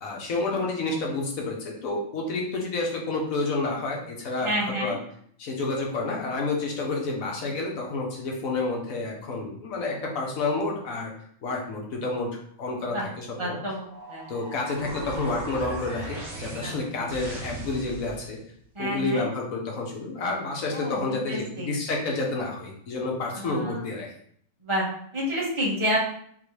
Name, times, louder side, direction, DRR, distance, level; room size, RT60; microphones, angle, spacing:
voice 1, 0.0-5.0 5.4-11.1 11.4-13.6 14.3-18.4 18.8-24.1, left 3 dB, 70° left, -1 dB, 1.3 m, -29 dB
voice 2, 4.4-4.9 12.9-13.1 13.4-14.2 16.6-16.7 17.0-17.1 18.7-19.3 20.7-21.7 22.0-22.1 23.3-23.8 24.6-24.9 25.1-26.0, equal, 20° right, -5 dB, 1.3 m, -29 dB
sound 1, 13.8-18.4, right 2 dB, 50° right, 1.8 m, -38 dB
3.8 x 3.7 x 3.2 m, 0.64 s
omnidirectional pair, 1.5 m